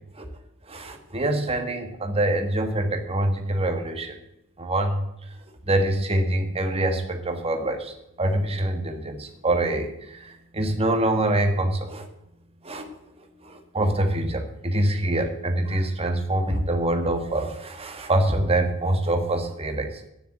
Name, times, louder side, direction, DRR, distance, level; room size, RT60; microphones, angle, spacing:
voice 1, 0.7-4.2 4.6-5.0 5.6-12.1 12.6-12.9 13.4-20.0, right 1 dB, 25° right, 5 dB, 1.6 m, -25 dB
10.0 x 6.9 x 7.5 m, 0.81 s
head